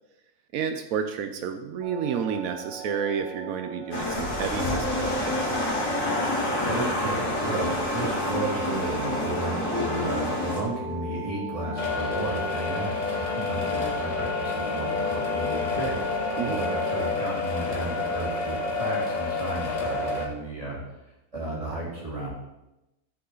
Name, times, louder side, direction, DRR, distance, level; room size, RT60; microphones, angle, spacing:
voice 1, 0.5-5.4 16.4-16.6, right 7 dB, 85° right, 7 dB, 1.1 m, -30 dB
sound 1, 1.8-17.1, right 2 dB, 55° right, 1.3 m, -38 dB
sound 2, 3.9-10.6, left 1 dB, 60° left, 2.8 m, -28 dB
voice 2, 6.6-16.0 16.4-20.8 21.3-22.3, right 2 dB, 25° right, -5 dB, 2.8 m, -33 dB
sound 3, 11.8-20.3, left 4 dB, 35° left, 1.2 m, -29 dB
13.0 x 5.6 x 3.9 m, 0.94 s
omnidirectional pair, 1.4 m